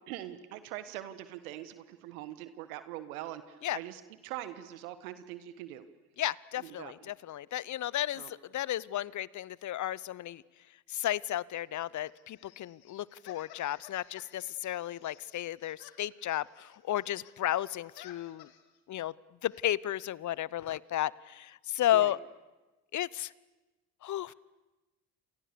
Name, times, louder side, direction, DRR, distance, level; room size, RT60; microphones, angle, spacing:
voice 1, 0.1-5.9 6.6-7.1 8.2-8.3 21.9-22.1, right 13 dB, 75° right, 12 dB, 1.4 m, -43 dB
voice 2, 6.2-10.4 10.9-18.5 18.9-19.1 19.4-22.2 22.9-23.3 24.0-24.3, left 13 dB, 45° left, 23 dB, 0.8 m, -33 dB
sound 1, 11.5-17.4 17.6-18.8 19.5-19.6, left 11 dB, 60° left, 2.3 m, -56 dB
29.5 x 27.0 x 6.9 m, 1.1 s
hypercardioid pair, 55°, 43 cm